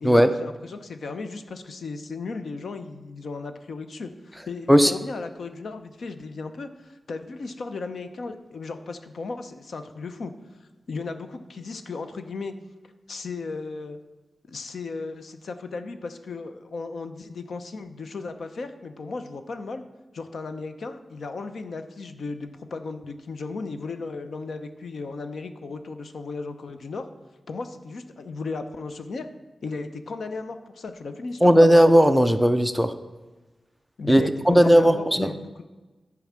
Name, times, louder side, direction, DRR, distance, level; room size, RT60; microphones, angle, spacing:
voice 1, 0.0-10.3 10.9-12.5 13.1-14.0 14.5-19.8 20.1-27.1 27.5-29.3 29.6-31.8 34.0-35.6, left 3 dB, 70° left, 8 dB, 0.7 m, -35 dB
voice 2, 31.4-32.9 34.1-35.3, equal, ahead, 9 dB, 0.5 m, -16 dB
11.0 x 4.7 x 7.3 m, 1.2 s
wide cardioid pair, 135°, 0 cm